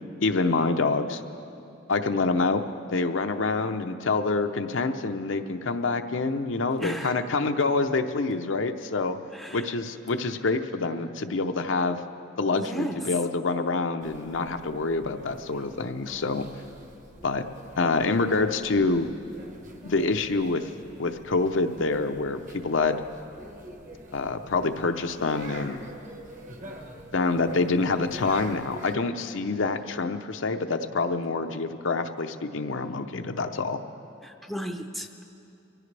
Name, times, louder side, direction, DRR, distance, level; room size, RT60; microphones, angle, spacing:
voice 1, 0.2-1.2 1.9-2.6 2.9-9.2 9.5-12.0 12.4-16.5 17.2-17.4 17.8-19.1 19.8-20.6 21.0-23.0 24.1-25.8 27.1-33.8, left 3 dB, 70° left, 7 dB, 0.7 m, -26 dB
voice 2, 6.8-7.2 9.3-9.7 12.6-13.0 34.2-35.2, equal, ahead, 4 dB, 0.6 m, -34 dB
sound 1, 14.0-29.0, right 1 dB, 40° right, 1.2 m, -46 dB
23.5 x 15.5 x 3.3 m, 2.7 s
head